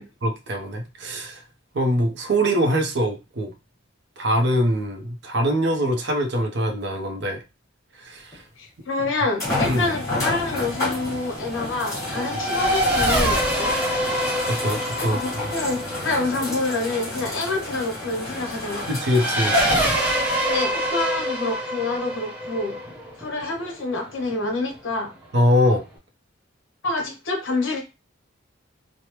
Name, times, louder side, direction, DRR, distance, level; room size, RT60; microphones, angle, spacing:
voice 1, 0.2-1.4 1.7-3.5 4.2-7.4 8.0-8.4 9.7-9.9 14.5-15.2 18.9-19.5 25.3-25.8, equal, 55° right, 3 dB, 0.6 m, -23 dB
sound 1, 8.3-8.4 9.4-20.4 21.2-21.3 24.7-24.8, left 2 dB, 15° left, 1.4 m, -30 dB
voice 2, 8.6-13.7 15.0-18.9 20.5-22.8 23.2-25.1 26.8-27.8, left 3 dB, 70° left, 1 dB, 1.1 m, -27 dB
Race car auto racing / Accelerating revving vroom, 10.2-24.3, equal, 10° right, 0.8 m, -26 dB
3.2 x 2.1 x 2.9 m, 0.27 s
head